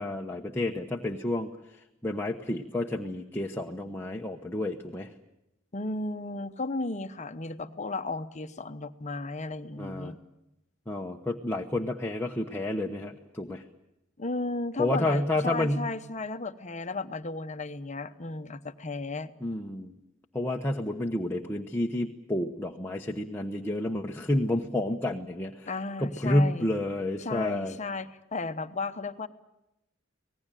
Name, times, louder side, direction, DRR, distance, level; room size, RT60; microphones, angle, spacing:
voice 1, 0.0-5.1 9.8-10.1 10.9-13.6 14.8-15.9 19.4-20.0 20.3-25.7 26.0-27.8, left 1 dB, 10° left, 1 dB, 1.0 m, -30 dB
voice 2, 5.7-10.2 14.2-19.3 25.7-26.7 27.2-29.3, left 3 dB, 35° left, 10 dB, 0.9 m, -34 dB
26.0 x 18.5 x 9.1 m, 0.90 s
head